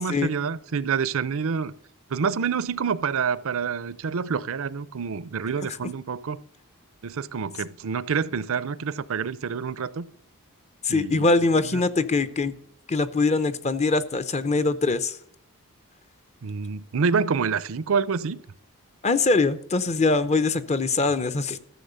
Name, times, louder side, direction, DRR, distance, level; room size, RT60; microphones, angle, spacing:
voice 1, 0.0-1.7 2.1-6.4 7.0-10.0 10.9-11.3 11.7-11.8 16.4-18.4, right 6 dB, 65° right, 0.6 m, -27 dB
voice 2, 10.8-12.5 12.9-15.2 19.0-21.6, left 3 dB, 30° left, 0.7 m, -23 dB
13.5 x 7.0 x 6.8 m
head